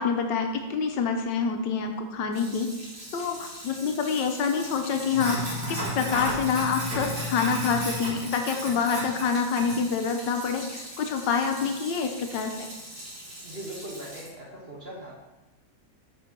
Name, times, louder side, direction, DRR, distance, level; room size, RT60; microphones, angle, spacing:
voice 1, 0.0-2.7 3.1-12.7, left 6 dB, 75° left, 4 dB, 1.4 m, -27 dB
Sink (filling or washing), 2.3-14.3, equal, 80° right, 3.0 m, -36 dB
voice 2, 13.4-15.1, right 1 dB, 35° right, -4 dB, 1.4 m, -40 dB
5.3 x 4.4 x 5.8 m, 1.1 s
omnidirectional pair, 2.0 m